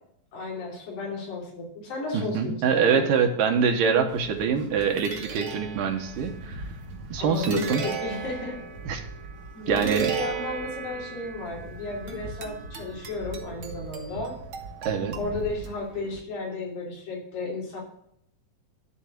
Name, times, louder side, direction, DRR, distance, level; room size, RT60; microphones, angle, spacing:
voice 1, 0.3-3.1 7.2-8.6 9.5-14.4 15.1-17.8, left 3 dB, 75° left, -2 dB, 4.9 m, -33 dB
voice 2, 2.1-6.6 7.1-7.8 8.8-9.0 9.7-10.1 14.8-15.2, right 6 dB, 75° right, 4 dB, 2.7 m, -24 dB
sound 1, 4.1-16.2, right 5 dB, 55° right, 1.5 m, -36 dB
13.0 x 4.5 x 7.4 m, 0.71 s
omnidirectional pair, 4.1 m